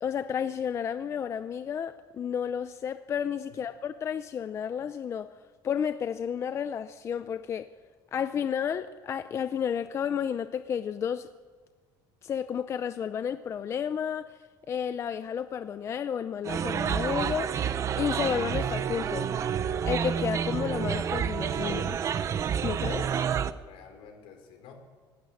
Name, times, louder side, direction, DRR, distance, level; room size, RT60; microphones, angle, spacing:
voice 1, 0.0-5.3 5.6-7.7 8.1-11.3 12.2-14.4 14.7-17.6 18.0-19.3 19.8-22.0 22.6-23.1, left 8 dB, 30° left, 11 dB, 0.5 m, -31 dB
sound 1, 16.5-23.5, right 7 dB, 35° right, 0.8 m, -29 dB
voice 2, 23.2-24.7, left 6 dB, 70° left, 4 dB, 5.0 m, -52 dB
17.0 x 17.0 x 9.9 m, 1.5 s
cardioid pair, 160°, 9 cm